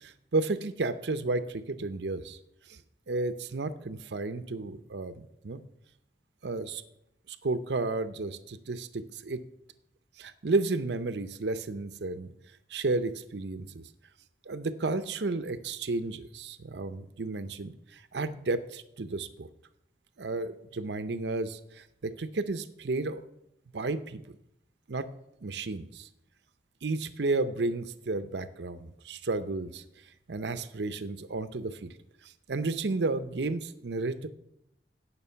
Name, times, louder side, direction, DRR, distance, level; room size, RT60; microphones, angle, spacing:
voice 1, 0.0-2.4 2.7-2.8 3.1-5.6 6.4-6.8 7.3-9.4 10.2-12.3 12.7-13.8 14.5-19.5 20.2-23.2 23.7-24.2 24.9-25.1 25.4-26.1 26.8-29.8 30.3-31.9 32.2-34.3, right 3 dB, 75° right, 12 dB, 0.7 m, -32 dB
16.5 x 5.9 x 5.7 m, 0.82 s
head